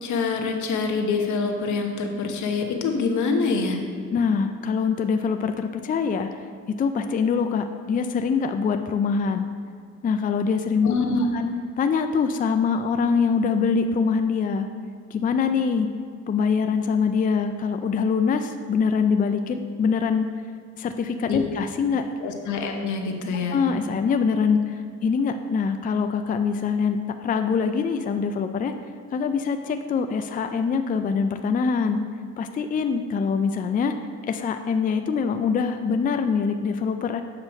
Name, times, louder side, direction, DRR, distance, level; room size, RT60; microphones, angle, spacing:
voice 1, 0.0-3.8 10.8-11.3 21.3-21.4 22.2-23.6, left 4 dB, 75° left, 3 dB, 1.0 m, -25 dB
voice 2, 4.1-9.5 10.0-10.9 11.3-11.5 11.8-14.7 15.1-15.9 16.3-20.3 20.8-22.1 23.5-28.7 29.1-32.0 32.4-33.9 34.3-37.2, left 5 dB, 30° left, 7 dB, 0.4 m, -24 dB
7.5 x 3.2 x 6.2 m, 2.3 s
cardioid pair, 90°, 30 cm